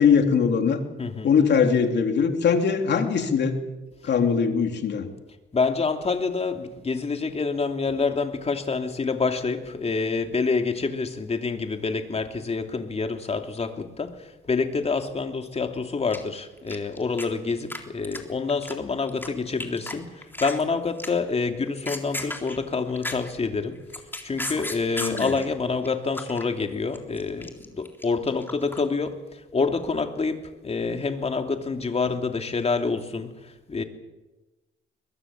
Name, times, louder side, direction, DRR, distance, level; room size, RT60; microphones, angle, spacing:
voice 1, 0.0-0.8 1.2-3.6 4.0-5.1 25.0-25.3, left 6 dB, 60° left, 5 dB, 3.4 m, -21 dB
voice 2, 1.0-1.3 5.5-23.8 24.2-33.8, left 4 dB, 30° left, 6 dB, 2.9 m, -27 dB
sound 1, 16.1-17.3 17.5-17.8 18.0-19.3 19.6-19.9 20.2-20.6 21.0-21.3 21.7-23.4 23.8-25.5 25.8-26.4 26.7-28.8, left 1 dB, 10° left, 3.7 m, -34 dB
22.5 x 22.0 x 7.5 m, 1.1 s
cardioid pair, 90°, 20 cm